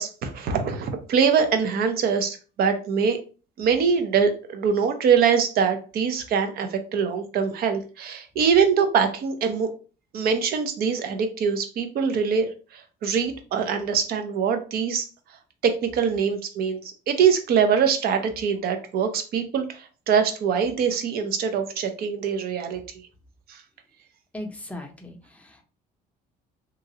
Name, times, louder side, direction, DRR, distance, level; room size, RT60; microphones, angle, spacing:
voice 1, 0.0-3.2 3.6-9.7 10.1-15.1 15.6-22.8 23.5-23.6, right 6 dB, 65° right, 7 dB, 0.7 m, -23 dB
voice 2, 24.3-25.6, left 1 dB, 10° left, 3 dB, 0.6 m, -38 dB
2.9 x 2.4 x 2.8 m, 0.36 s
cardioid pair, 110°, 17 cm